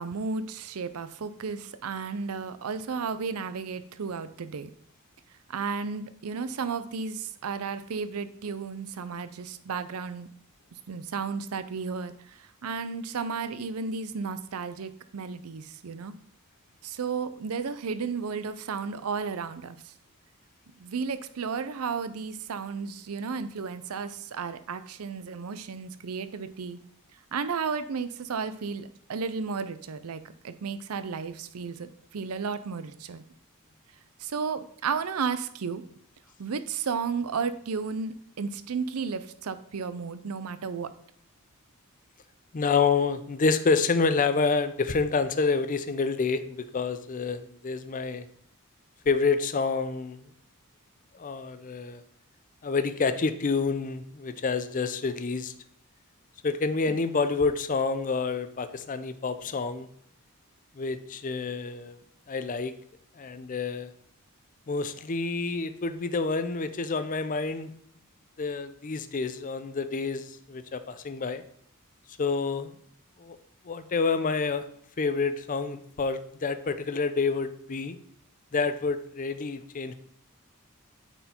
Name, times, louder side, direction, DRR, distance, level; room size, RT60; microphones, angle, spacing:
voice 1, 0.0-4.7 5.5-10.3 10.9-12.1 12.6-16.1 16.8-19.8 20.8-26.8 27.3-33.2 34.2-35.8 36.4-40.9 56.9-57.0, right 5 dB, 80° right, 12 dB, 0.5 m, -33 dB
voice 2, 42.5-48.3 49.1-50.2 51.1-52.0 52.6-55.5 56.4-59.9 60.8-62.0 62.3-62.7 63.2-63.9 64.7-67.7 68.4-71.4 72.2-72.7 73.2-73.4 73.6-74.6 75.0-78.0 78.5-79.9, left 4 dB, 35° left, 11 dB, 0.5 m, -28 dB
8.9 x 4.4 x 4.3 m, 0.65 s
head